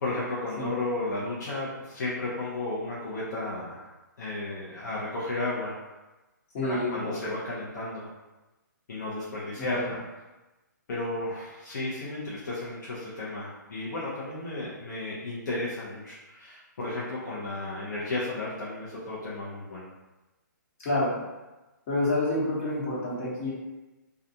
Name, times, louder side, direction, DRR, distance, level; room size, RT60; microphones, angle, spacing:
voice 1, 0.0-5.7 6.6-8.1 8.9-10.2 10.9-19.8, left 2 dB, 65° left, -8 dB, 0.8 m, -33 dB
voice 2, 6.5-7.2 9.6-9.9 20.8-21.2 21.9-23.5, left 1 dB, 40° left, -7 dB, 1.2 m, -28 dB
2.4 x 2.2 x 2.7 m, 1.1 s
hypercardioid pair, 140°, 11 cm